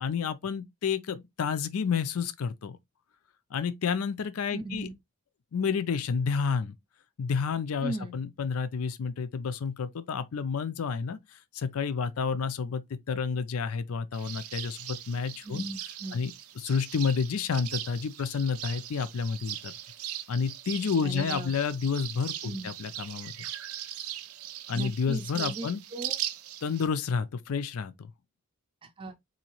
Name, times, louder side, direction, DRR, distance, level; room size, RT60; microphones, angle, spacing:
voice 1, 0.0-2.8 3.5-4.9 5.5-6.8 7.2-11.2 11.5-12.8 13.1-15.6 16.1-16.3 16.6-19.7 20.3-23.3 24.7-25.8 26.6-28.1, left 6 dB, 80° left, 0.4 m, -30 dB
voice 2, 4.5-4.9 7.8-8.2 15.4-16.2 21.0-21.5 22.4-22.7 24.7-26.2 28.8-29.1, right 2 dB, 25° right, 0.5 m, -37 dB
sound 1, 14.1-26.9, right 12 dB, 85° right, 0.5 m, -39 dB
4.0 x 2.7 x 2.9 m
head